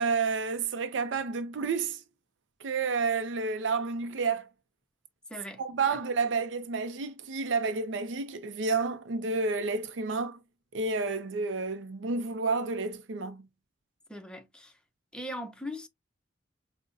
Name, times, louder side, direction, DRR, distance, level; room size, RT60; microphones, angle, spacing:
voice 1, 0.0-2.0 2.6-4.5 5.6-10.4 10.7-13.5, right 4 dB, 80° right, 0.5 m, -30 dB
voice 2, 5.3-5.6 5.9-6.0 14.1-14.7 15.1-15.9, left 1 dB, 5° left, 0.6 m, -40 dB
5.3 x 2.1 x 2.5 m
head